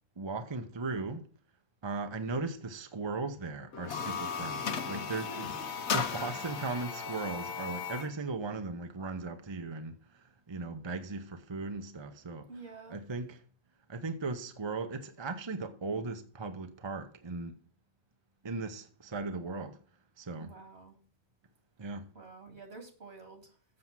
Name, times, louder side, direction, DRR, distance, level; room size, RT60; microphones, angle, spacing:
voice 1, 0.2-1.2 1.8-5.4 5.9-12.5 12.9-13.4 13.9-17.6 18.4-19.8 20.2-20.5 21.8-22.1, right 3 dB, 30° right, 0.7 m, -37 dB
sound 1, 3.7-8.1, left 6 dB, 85° left, 1.2 m, -36 dB
voice 2, 5.1-5.6 6.0-6.2 12.5-13.0 20.3-21.0 22.1-23.6, right 3 dB, 70° right, 2.5 m, -50 dB
7.6 x 6.9 x 5.9 m
omnidirectional pair, 1.1 m